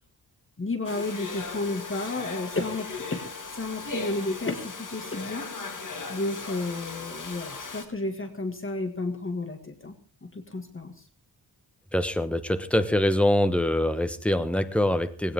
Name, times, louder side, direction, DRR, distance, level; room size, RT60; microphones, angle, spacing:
voice 1, 0.6-3.2 3.5-5.5 6.1-9.9 10.2-10.9, left 2 dB, 30° left, 6 dB, 2.0 m, -32 dB
Domestic sounds home sounds, 0.8-7.8, left 4 dB, 50° left, 2.2 m, -37 dB
voice 2, 11.9-15.3, left 1 dB, 5° left, 10 dB, 1.1 m, -24 dB
19.5 x 17.0 x 3.6 m, 0.37 s
wide cardioid pair, 155°, 41 cm